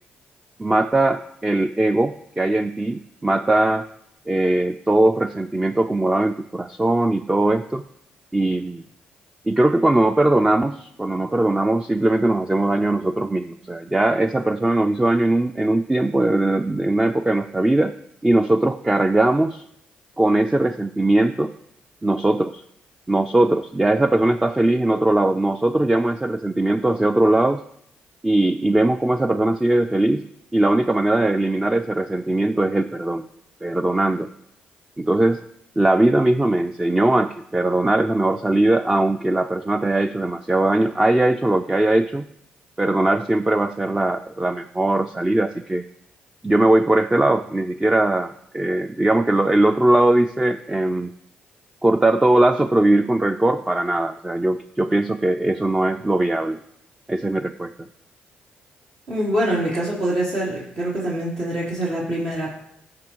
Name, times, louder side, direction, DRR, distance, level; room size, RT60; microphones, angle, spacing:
voice 1, 0.6-3.9 4.3-7.8 8.3-8.8 9.5-17.9 18.2-19.6 20.2-21.5 22.0-22.6 23.1-27.6 28.2-30.2 30.5-33.3 33.6-34.3 35.0-35.4 35.8-42.3 42.8-45.8 46.4-51.1 51.8-56.6 57.1-57.7, right 1 dB, 15° right, 8 dB, 0.4 m, -20 dB
voice 2, 59.1-62.6, right 1 dB, 75° right, -8 dB, 3.1 m, -24 dB
13.5 x 5.4 x 3.0 m, 0.74 s
supercardioid pair, 50°, 4 cm